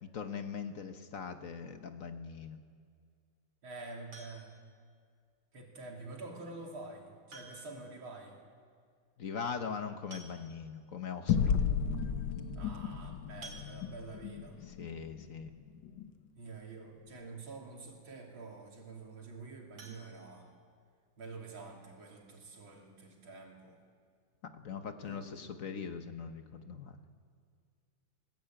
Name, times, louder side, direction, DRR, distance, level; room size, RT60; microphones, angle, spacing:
voice 1, 0.0-2.6 9.2-11.5 14.6-15.6 24.6-27.0, left 6 dB, 50° left, 8 dB, 1.2 m, -41 dB
voice 2, 3.6-4.5 5.5-8.4 12.5-14.6 16.4-20.5 21.2-23.8 25.1-25.4, right 3 dB, 85° right, 0 dB, 3.8 m, -47 dB
sound 1, 4.1-4.7 6.2-6.3 7.3-7.9 8.2-8.3 8.6-8.7 9.7-9.8 10.1-10.8 11.4-11.5 11.8-12.0 13.4-14.2 19.7-20.9 21.3-21.4 21.8-21.9 22.3-22.4, right 2 dB, 70° right, 3.5 m, -53 dB
sound 2, 11.3-16.1, left 7 dB, 70° left, 1.7 m, -34 dB
21.0 x 16.5 x 8.9 m, 2.1 s
omnidirectional pair, 2.1 m